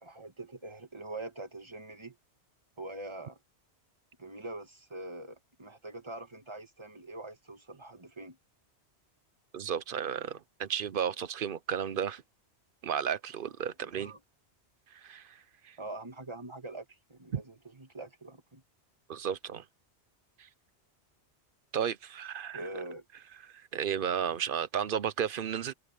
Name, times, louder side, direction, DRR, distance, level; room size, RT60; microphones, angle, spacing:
voice 1, 0.0-2.2 2.8-3.4 4.2-8.4 14.0-14.2 15.8-18.6 22.5-23.1, right 2 dB, 25° right, 1.9 m, -44 dB
voice 2, 9.5-12.2 12.8-14.1 15.0-15.4 15.6-15.8 17.3-17.4 19.1-19.6 21.7-22.7 23.5-25.7, right 8 dB, 55° right, 0.8 m, -33 dB
omnidirectional pair, 1.2 m